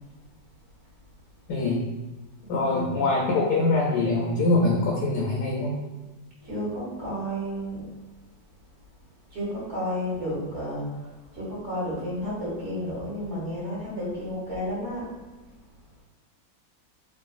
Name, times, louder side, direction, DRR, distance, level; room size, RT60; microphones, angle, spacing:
voice 1, 1.5-1.8 2.5-5.8, left 2 dB, 75° left, -2 dB, 1.1 m, -23 dB
voice 2, 2.6-2.9 6.4-7.9 9.3-15.1, equal, 40° right, -8 dB, 1.3 m, -32 dB
3.1 x 2.5 x 2.4 m, 1.2 s
omnidirectional pair, 2.0 m